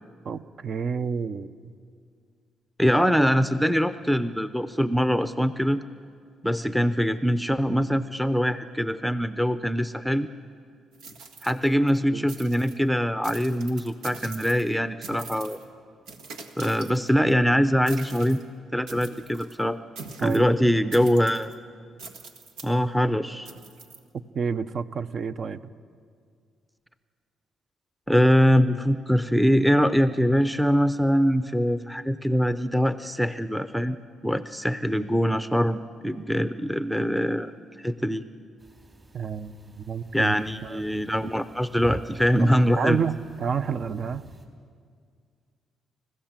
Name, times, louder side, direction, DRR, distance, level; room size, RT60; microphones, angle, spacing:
voice 1, 0.2-1.5 12.1-12.3 20.2-20.7 24.3-25.6 39.1-40.8 42.4-44.2, right 6 dB, 50° right, 12 dB, 0.8 m, -30 dB
voice 2, 2.8-5.8 6.4-10.3 11.4-15.6 16.6-18.4 18.7-19.8 20.2-21.5 22.6-23.5 28.1-34.0 34.2-37.6 37.8-38.2 40.1-43.0, equal, ahead, 11 dB, 0.6 m, -23 dB
sound 1, 10.9-12.0 12.3-12.8 13.2-14.7 15.0-15.6 16.1-17.3 17.9-18.4 18.9-19.5 19.9-20.5 20.9-21.5 22.0-22.7 23.4-24.0, right 4 dB, 90° right, 1.7 m, -43 dB
sound 2, 38.6-44.5, right 2 dB, 30° right, 3.7 m, -45 dB
30.0 x 14.5 x 7.5 m, 2.2 s
cardioid pair, 90°, 0 cm